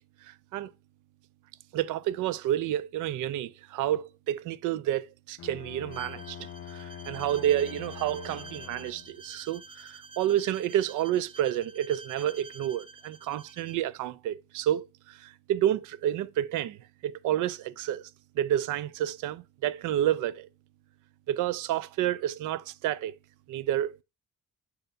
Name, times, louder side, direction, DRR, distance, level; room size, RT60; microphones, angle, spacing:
voice 1, 0.2-0.7 1.7-18.0 18.4-20.5 21.3-23.1 23.5-24.0, right 12 dB, 85° right, 0.5 m, -30 dB
Bowed string instrument, 5.4-9.3, left 10 dB, 45° left, 0.4 m, -44 dB
Bowed string instrument 2, 5.9-13.8, right 3 dB, 20° right, 0.3 m, -48 dB
6.6 x 2.6 x 5.3 m
cardioid pair, 90°, 30 cm